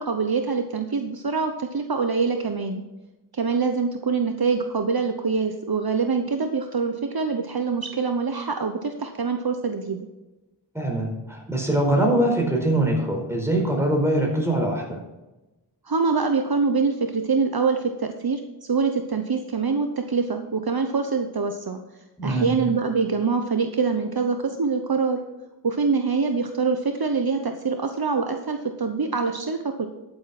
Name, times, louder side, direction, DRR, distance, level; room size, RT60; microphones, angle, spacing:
voice 1, 0.0-2.8 3.3-10.1 15.8-18.4 18.7-21.8 22.2-25.2 25.6-29.9, right 4 dB, 60° right, 6 dB, 1.0 m, -24 dB
voice 2, 10.7-15.0 22.2-22.5, right 1 dB, 5° right, 0 dB, 4.6 m, -23 dB
12.5 x 7.9 x 4.3 m, 1.0 s
wide cardioid pair, 60°, 43 cm